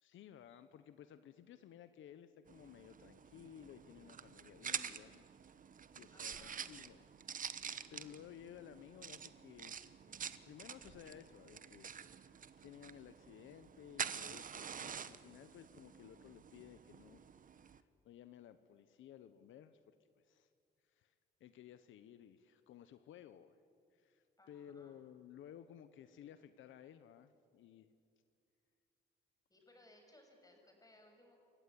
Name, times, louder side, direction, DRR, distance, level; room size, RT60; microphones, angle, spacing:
voice 1, 0.0-5.2 6.0-7.0 7.5-17.2 17.7-19.8 20.2-20.5 20.9-21.1 21.4-23.5 23.9-27.9, left 10 dB, 75° left, 12 dB, 1.0 m, -57 dB
sound 1, 2.5-17.8, right 7 dB, 45° right, 1.0 m, -48 dB
voice 2, 6.1-6.6 24.4-25.0 29.5-31.4, left 1 dB, 20° left, 3 dB, 6.8 m, -64 dB
27.5 x 15.5 x 9.7 m, 2.4 s
cardioid pair, 90°, 20 cm